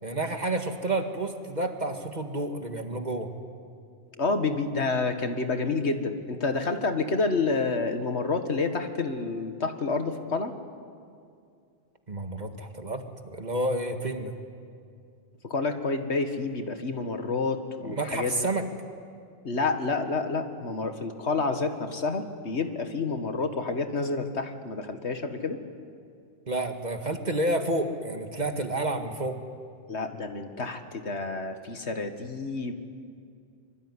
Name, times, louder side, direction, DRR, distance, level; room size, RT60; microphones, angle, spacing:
voice 1, 0.0-3.3 12.1-13.0 13.3-14.3 17.8-18.7 26.5-29.4, right 2 dB, 40° right, 5 dB, 2.0 m, -30 dB
voice 2, 4.2-10.5 15.4-18.3 19.4-25.6 29.9-32.8, left 3 dB, 80° left, 7 dB, 2.1 m, -29 dB
25.0 x 24.5 x 9.9 m, 2.3 s
omnidirectional pair, 1.1 m